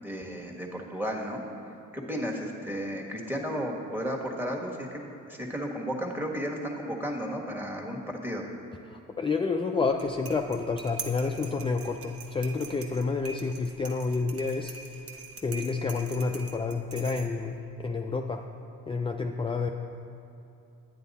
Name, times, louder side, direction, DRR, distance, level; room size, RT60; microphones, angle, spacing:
voice 1, 0.0-1.4 1.9-5.0 5.3-8.4, equal, 5° right, 0 dB, 1.5 m, -33 dB
voice 2, 8.9-14.7 15.4-18.4 18.9-19.7, left 4 dB, 20° left, 3 dB, 0.4 m, -29 dB
sound 1, 9.9-17.6, right 4 dB, 50° right, 1.0 m, -44 dB
9.5 x 9.3 x 4.1 m, 2.8 s
cardioid pair, 90°, 30 cm